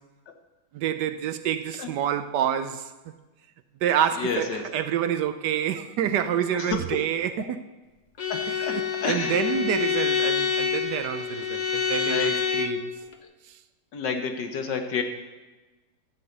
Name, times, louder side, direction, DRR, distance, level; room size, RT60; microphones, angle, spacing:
voice 1, 0.7-2.9 3.8-7.6 8.5-12.9 13.5-13.6, right 9 dB, 75° right, 1.2 m, -28 dB
voice 2, 4.2-4.6 6.5-7.0 8.3-9.6 12.0-12.3 13.9-15.0, left 5 dB, 75° left, 1.8 m, -30 dB
Bowed string instrument, 8.2-12.9, left 7 dB, 55° left, 0.4 m, -27 dB
13.0 x 5.4 x 7.9 m
omnidirectional pair, 2.0 m